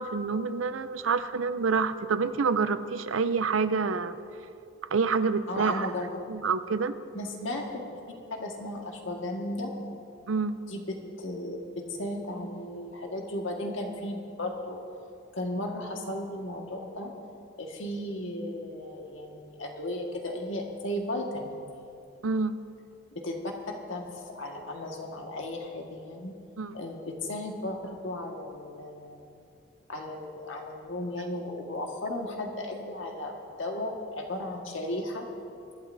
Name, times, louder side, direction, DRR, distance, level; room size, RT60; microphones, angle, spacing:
voice 1, 0.0-4.2 4.9-6.0 6.3-6.9 10.3-10.6 22.2-22.6 26.6-26.8, right 5 dB, 90° right, 12 dB, 0.6 m, -27 dB
voice 2, 5.5-6.1 7.1-7.8 8.3-9.7 10.7-14.8 15.3-17.1 17.6-21.8 23.1-23.5 23.9-26.4 26.7-29.4 29.9-33.3 33.6-35.3, left 1 dB, 80° left, 1 dB, 1.7 m, -35 dB
23.5 x 12.0 x 2.7 m, 2.5 s
head